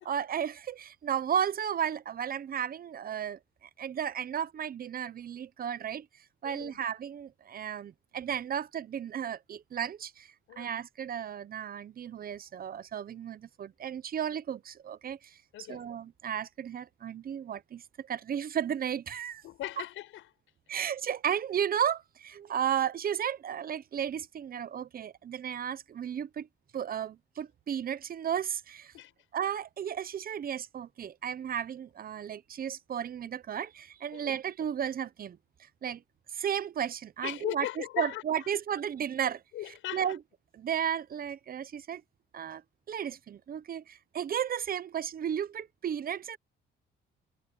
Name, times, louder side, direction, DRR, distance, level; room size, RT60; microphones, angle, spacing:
voice 1, 0.0-6.1 6.4-19.4 20.7-26.5 26.7-28.9 29.3-36.0 36.3-40.2 40.5-42.0 42.3-42.6 42.9-46.4, right 9 dB, 45° right, 0.9 m, -34 dB
voice 2, 6.4-6.8 10.5-10.8 15.5-15.8 19.4-20.3 28.9-29.1 34.1-34.4 37.2-38.2 39.5-40.1, left 14 dB, 90° left, 7.1 m, -38 dB
cardioid pair, 90°, 20 cm